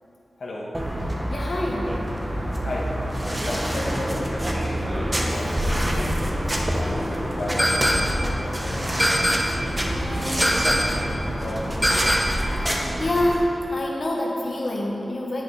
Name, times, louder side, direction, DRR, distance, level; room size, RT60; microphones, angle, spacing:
voice 1, 0.4-0.8 2.6-2.9 3.4-4.8 5.3-6.1 6.8-7.7 8.3-9.3 10.0-12.2, left 1 dB, 80° left, -3 dB, 1.2 m, -34 dB
sound 1, 0.7-13.3, equal, 20° right, 0.9 m, -26 dB
voice 2, 1.3-1.8 9.9-10.4 13.0-15.4, left 1 dB, 50° left, -3 dB, 1.1 m, -26 dB
sound 2, 7.6-8.3 9.0-9.7 10.4-11.1 11.8-12.6, equal, ahead, 0.5 m, -23 dB
10.0 x 7.9 x 3.2 m, 2.9 s
wide cardioid pair, 85°, 0 cm